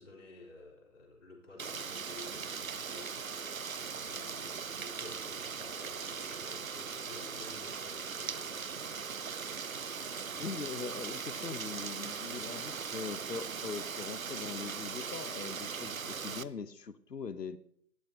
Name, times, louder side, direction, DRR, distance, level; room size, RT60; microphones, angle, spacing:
voice 1, 0.0-3.2 3.9-9.1 10.1-10.8, left 3 dB, 45° left, -2 dB, 4.0 m, -52 dB
Rain, 1.6-16.4, right 6 dB, 55° right, 0.6 m, -39 dB
voice 2, 10.4-17.6, left 5 dB, 75° left, 14 dB, 1.1 m, -41 dB
25.0 x 11.5 x 2.9 m, 0.64 s
figure-of-eight pair, 155°, 49 cm